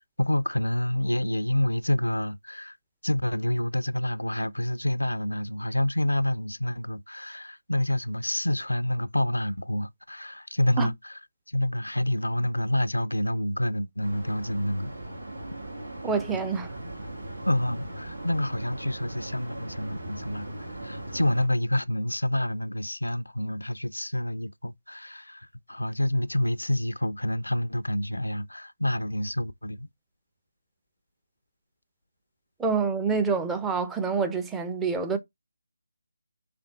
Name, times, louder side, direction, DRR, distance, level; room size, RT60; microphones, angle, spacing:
voice 1, 0.2-2.8 3.0-10.9 11.5-14.9 17.5-29.9, left 1 dB, 85° left, 0.4 m, -28 dB
sound 1, 14.0-21.5, right 1 dB, 80° right, 1.8 m, -39 dB
voice 2, 16.0-16.7 32.6-35.2, right 5 dB, 5° right, 0.5 m, -27 dB
3.6 x 3.3 x 4.0 m
figure-of-eight pair, 155°, 0 cm